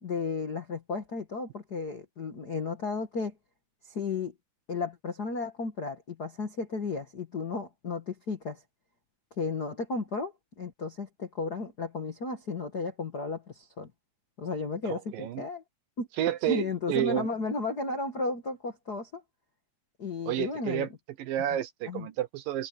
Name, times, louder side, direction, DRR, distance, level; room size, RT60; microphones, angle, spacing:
voice 1, 0.0-3.3 3.8-4.3 4.7-8.6 9.4-13.9 14.4-15.6 16.0-16.1 16.5-19.2 20.0-20.9 21.8-22.1, left 3 dB, 50° left, 1.1 m, -34 dB
voice 2, 14.8-15.5 16.2-17.3 20.3-20.9 21.2-22.7, right 12 dB, 70° right, 2.4 m, -30 dB
omnidirectional pair, 4.5 m